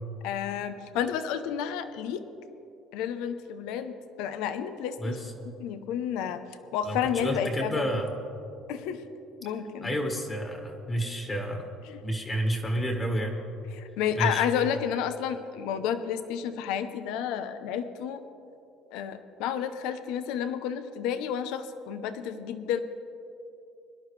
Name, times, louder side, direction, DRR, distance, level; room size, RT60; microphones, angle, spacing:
voice 1, 0.2-2.2 2.9-5.2 5.6-6.4 6.7-7.9 8.7-9.0 9.4-9.9 11.9-12.0 13.7-18.2 18.9-22.8, left 8 dB, 80° left, 10 dB, 0.7 m, -31 dB
voice 2, 5.0-5.4 6.8-8.1 9.8-11.7 12.0-13.3 14.1-14.5, equal, 20° left, 3 dB, 1.6 m, -30 dB
22.5 x 11.5 x 3.2 m, 2.8 s
cardioid pair, 130°, 0 cm